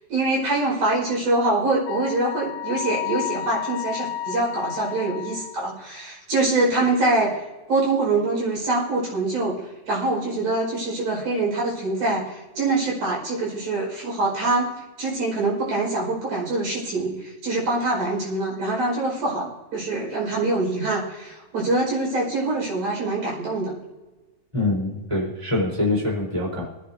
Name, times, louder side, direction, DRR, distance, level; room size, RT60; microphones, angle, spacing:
voice 1, 0.1-7.4 7.7-9.6 9.9-23.8, right 2 dB, 70° right, -4 dB, 6.6 m, -24 dB
Wind instrument woodwind instrument, 1.9-5.7, left 12 dB, 75° left, 1.9 m, -31 dB
voice 2, 24.5-26.6, left 2 dB, 10° right, -3 dB, 3.6 m, -24 dB
25.5 x 9.7 x 2.8 m, 1.2 s
omnidirectional pair, 3.7 m